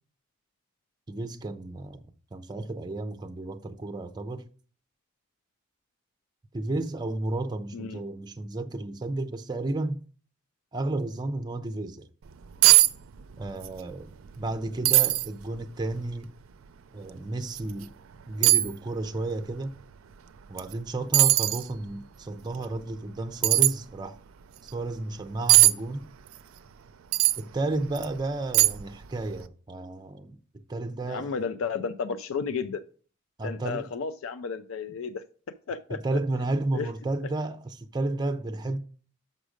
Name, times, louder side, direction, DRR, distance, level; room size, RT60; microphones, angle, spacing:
voice 1, 1.1-4.5 6.5-10.0 10.7-12.1 13.4-16.3 16.9-17.9 18.3-19.8 20.5-24.2 24.6-26.1 27.4-31.3 33.4-33.9 35.9-38.8, right 2 dB, 20° right, 0.4 m, -32 dB
sound 1, 12.3-12.4 12.6-12.9 13.2-13.7 14.1-14.2 14.8-15.3 15.9-16.0 17.5-17.6 18.4-18.7 20.6-20.7 21.1-21.6 23.4-23.7 25.5-25.7 27.1-27.4 28.0-28.1 28.5-28.9 29.2-29.4, right 17 dB, 90° right, 0.4 m, -19 dB
voice 2, 31.1-32.8 33.4-35.2 35.7-36.0 36.7-36.9, left 5 dB, 85° left, 0.4 m, -32 dB
6.3 x 5.4 x 5.0 m
head